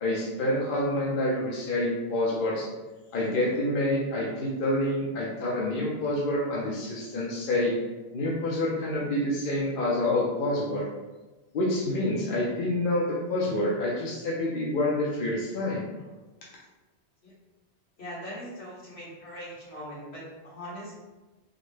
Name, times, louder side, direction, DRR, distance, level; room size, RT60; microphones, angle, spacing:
voice 1, 0.0-2.7 3.1-7.7 8.1-10.9 11.5-15.8, left 1 dB, 60° left, -5 dB, 0.8 m, -27 dB
voice 2, 18.0-21.0, equal, 75° left, -9 dB, 1.7 m, -41 dB
4.0 x 2.1 x 3.2 m, 1.2 s
omnidirectional pair, 1.1 m